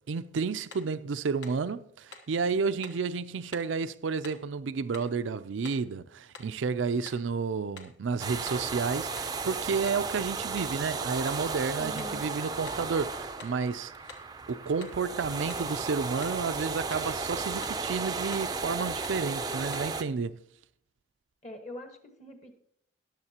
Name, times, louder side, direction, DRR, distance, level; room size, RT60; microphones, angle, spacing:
voice 1, 0.1-13.9 14.5-20.4, right 5 dB, 85° right, 0.4 m, -31 dB
sound 1, 0.7-0.9 1.4-1.7 2.1-2.3 2.8-3.1 3.5-3.7 4.2-4.5 4.9-5.2 5.6-5.9 6.3-6.6 7.1-7.3 7.8-8.0 8.5-8.7 9.2-9.4 9.9-10.1 10.6-10.8 11.3-11.5 12.0-12.2 12.7-12.9 13.4-13.6 14.1-14.3 14.8-15.0 15.5-15.7 16.2-16.4 16.9-17.1 17.6-17.9 18.3-18.5 19.0-19.3 19.7-20.0, left 4 dB, 65° left, 1.2 m, -48 dB
sound 2, 8.2-20.0, right 4 dB, 20° right, 0.5 m, -34 dB
voice 2, 11.8-12.3 21.4-22.6, equal, 35° left, 1.4 m, -42 dB
22.0 x 7.3 x 2.9 m
head